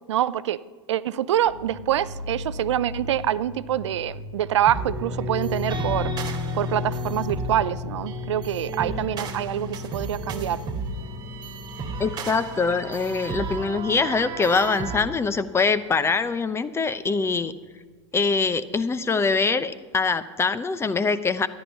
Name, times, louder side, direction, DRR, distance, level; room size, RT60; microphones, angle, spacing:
voice 1, 0.1-0.6 0.9-6.1 6.5-10.6, right 11 dB, 70° right, 17 dB, 0.5 m, -25 dB
sound 1, 1.5-16.6 16.8-17.9 18.3-18.4 18.7-19.4, left 1 dB, 50° left, 2.6 m, -42 dB
sound 2, 4.7-15.0, equal, 30° right, 2.1 m, -31 dB
voice 2, 12.0-17.5 18.1-21.5, left 4 dB, 15° left, 14 dB, 0.7 m, -23 dB
13.5 x 10.5 x 5.7 m, 1.3 s
hypercardioid pair, 85°, 15 cm